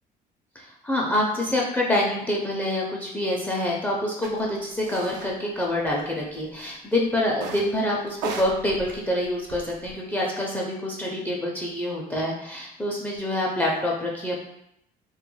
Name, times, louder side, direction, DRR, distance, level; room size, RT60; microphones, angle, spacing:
voice 1, 0.6-14.4, left 1 dB, 10° left, -3 dB, 0.4 m, -26 dB
sound 1, 4.2-4.3 4.8-5.3 5.6-6.4 7.3-7.8 8.1-9.9, right 4 dB, 90° right, 0.4 m, -36 dB
2.2 x 2.2 x 3.0 m, 0.79 s
cardioid pair, 110°, 17 cm